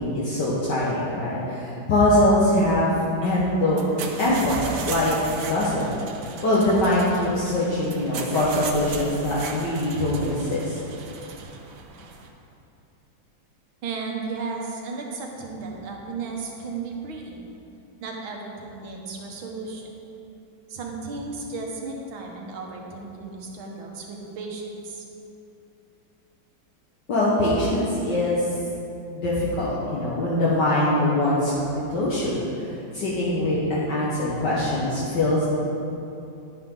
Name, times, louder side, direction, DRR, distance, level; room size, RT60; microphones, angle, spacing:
voice 1, 0.0-2.9 3.2-3.8 4.2-5.9 6.4-10.8 27.1-28.5 29.1-31.5 31.9-32.5 32.9-35.4, left 1 dB, 60° left, -7 dB, 1.9 m, -23 dB
sound 1, 3.7-12.3, right 4 dB, 65° right, 1.3 m, -36 dB
voice 2, 13.8-17.5 18.0-19.8 20.7-25.0, right 4 dB, 80° right, 0 dB, 2.0 m, -34 dB
10.0 x 10.0 x 3.8 m, 2.7 s
omnidirectional pair, 2.2 m